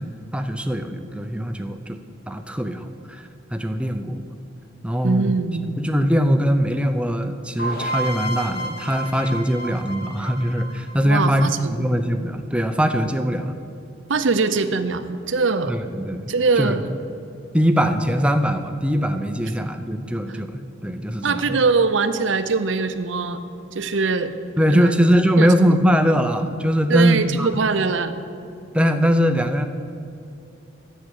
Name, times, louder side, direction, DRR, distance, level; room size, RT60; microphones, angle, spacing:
voice 1, 0.0-2.0 2.3-4.2 4.8-5.3 5.8-13.5 15.7-16.8 17.5-21.6 24.6-27.5 28.7-29.7, equal, 5° right, 7 dB, 0.5 m, -21 dB
voice 2, 5.0-5.8 11.0-11.9 14.1-15.8 16.3-16.9 20.3-20.4 21.2-23.4 23.7-24.3 24.7-24.9 25.4-25.5 26.9-28.2, right 4 dB, 80° right, 10 dB, 0.7 m, -22 dB
sound 1, 7.6-11.3, right 1 dB, 50° left, 2.4 m, -30 dB
9.5 x 7.5 x 8.3 m, 2.7 s
head